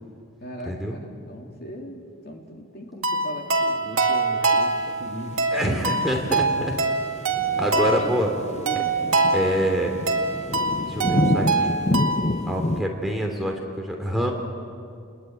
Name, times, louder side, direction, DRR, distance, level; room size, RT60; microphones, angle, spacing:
voice 1, 0.4-5.5 6.3-6.7 7.5-9.0, equal, 45° left, 1 dB, 3.3 m, -39 dB
sound 1, 3.0-12.4, right 3 dB, 85° right, 2.1 m, -25 dB
voice 2, 5.5-6.7 7.6-8.3 8.7-8.8 9.3-9.9 10.9-11.7 12.5-14.3, equal, ahead, 0 dB, 3.0 m, -26 dB
sound 2, 5.6-12.8, left 1 dB, 30° left, 0.6 m, -28 dB
30.0 x 21.0 x 9.1 m, 2.3 s
head